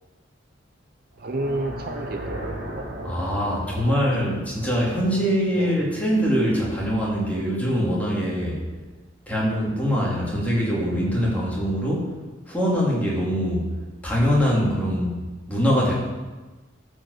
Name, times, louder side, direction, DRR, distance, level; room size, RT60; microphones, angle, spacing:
sound 1, 1.1-6.2, right 1 dB, 65° right, 2.4 m, -37 dB
voice 1, 1.2-2.9 3.8-4.3 5.6-5.8 9.8-10.0, right 2 dB, 50° right, 4 dB, 0.7 m, -32 dB
voice 2, 3.0-8.6 9.3-12.1 12.5-13.7 14.0-15.1 15.5-15.9, equal, 10° left, -5 dB, 2.7 m, -23 dB
13.0 x 5.2 x 6.6 m, 1.3 s
head